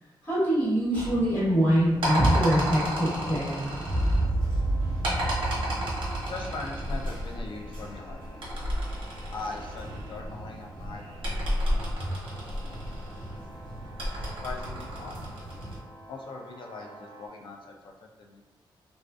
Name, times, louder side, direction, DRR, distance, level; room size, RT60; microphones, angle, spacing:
voice 1, 0.2-3.7 12.0-12.1, right 1 dB, 20° left, -12 dB, 1.2 m, -24 dB
sound 1, 0.9-15.8, equal, 85° right, 0.9 m, -33 dB
sound 2, 3.9-8.2, right 1 dB, 50° right, 0.4 m, -29 dB
sound 3, 4.4-17.3, right 2 dB, 5° right, 1.2 m, -51 dB
voice 2, 6.2-8.4 9.3-12.1 12.4-12.8 13.1-13.4 14.1-15.3 16.1-18.4, left 3 dB, 70° left, 1 dB, 0.4 m, -41 dB
2.3 x 2.3 x 2.3 m, 1.1 s
wide cardioid pair, 135°, 9 cm